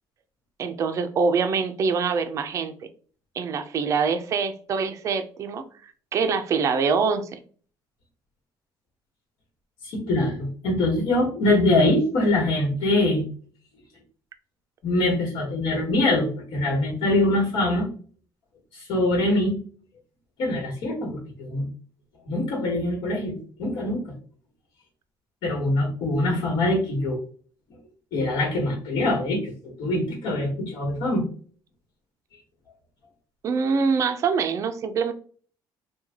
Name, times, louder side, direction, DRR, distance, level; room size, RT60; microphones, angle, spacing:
voice 1, 0.6-2.7 3.4-7.4 33.4-35.1, right 5 dB, 35° right, 8 dB, 0.4 m, -24 dB
voice 2, 9.8-13.2 14.8-17.9 18.7-19.6 20.4-21.6 22.3-24.1 25.4-27.2 28.1-31.2, left 1 dB, 70° left, -3 dB, 1.4 m, -23 dB
3.2 x 2.3 x 3.5 m, 0.44 s
cardioid pair, 155°, 8 cm